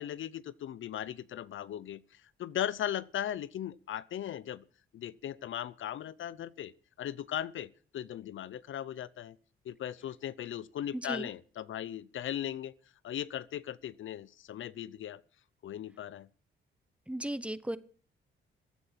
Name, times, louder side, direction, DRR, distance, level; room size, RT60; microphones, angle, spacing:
voice 1, 0.0-4.6 4.9-6.7 7.0-9.4 9.6-12.7 13.0-15.2 15.6-16.3, left 11 dB, 70° left, 0.7 m, -38 dB
voice 2, 10.9-11.3 17.1-17.8, right 1 dB, 5° right, 1.0 m, -36 dB
15.5 x 9.8 x 7.5 m
cardioid pair, 95°, 21 cm